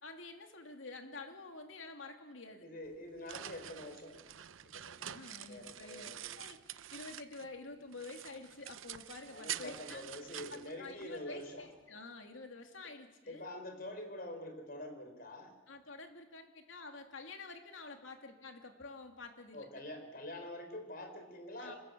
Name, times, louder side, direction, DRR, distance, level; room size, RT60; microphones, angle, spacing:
voice 1, 0.0-2.7 5.0-6.1 6.3-10.0 10.5-13.4 15.7-19.7 21.6-21.7, left 3 dB, 80° left, 5 dB, 2.8 m, -49 dB
voice 2, 2.6-4.3 4.7-5.1 5.5-6.4 9.3-11.7 13.3-15.6 19.5-21.8, left 1 dB, 45° left, 7 dB, 4.3 m, -46 dB
sound 1, 2.9-7.6 7.9-11.5, right 11 dB, 90° right, 0.7 m, -47 dB
26.0 x 21.0 x 8.6 m, 1.2 s
head